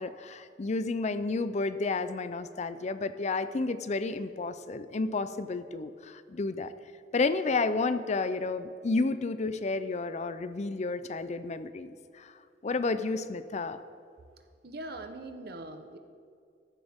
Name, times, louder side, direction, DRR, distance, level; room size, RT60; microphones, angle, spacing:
voice 1, 0.0-6.7 7.1-12.3 12.6-13.8, left 3 dB, 40° left, 12 dB, 0.5 m, -31 dB
voice 2, 14.6-16.0, right 2 dB, 65° right, 7 dB, 0.9 m, -41 dB
14.0 x 12.0 x 3.6 m, 2.3 s
head